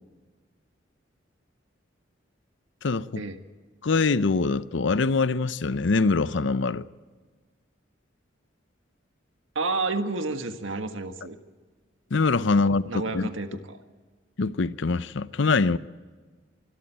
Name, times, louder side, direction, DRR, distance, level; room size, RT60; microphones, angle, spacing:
voice 1, 2.8-3.2 3.8-6.9 12.1-13.3 14.4-15.8, left 4 dB, 70° left, 0.6 m, -24 dB
voice 2, 9.5-11.4 12.6-13.8, right 3 dB, 85° right, 1.6 m, -30 dB
24.5 x 13.0 x 9.1 m
head